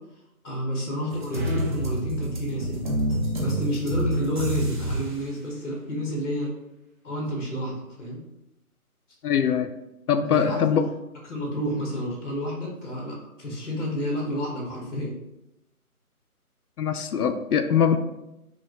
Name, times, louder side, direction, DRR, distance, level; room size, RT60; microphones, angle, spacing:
voice 1, 0.4-2.8 3.4-6.5 7.0-8.2 10.3-10.8 11.3-15.1, equal, 50° left, -1 dB, 1.2 m, -30 dB
sound 1, 1.1-5.2, right 1 dB, 35° right, 0.8 m, -28 dB
voice 2, 9.2-9.7 10.1-10.8 16.8-18.0, left 7 dB, 80° left, 8 dB, 0.5 m, -22 dB
5.7 x 2.2 x 2.8 m, 0.89 s
figure-of-eight pair, 155°, 45 cm